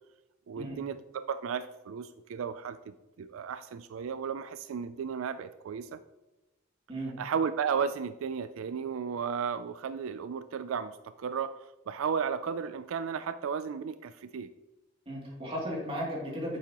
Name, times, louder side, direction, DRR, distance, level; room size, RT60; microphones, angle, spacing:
voice 1, 0.5-2.8 3.2-6.0 7.2-14.5, right 6 dB, 85° right, 13 dB, 0.4 m, -34 dB
voice 2, 15.1-16.6, equal, 30° right, -3 dB, 2.8 m, -35 dB
8.9 x 7.5 x 3.0 m, 1.0 s
head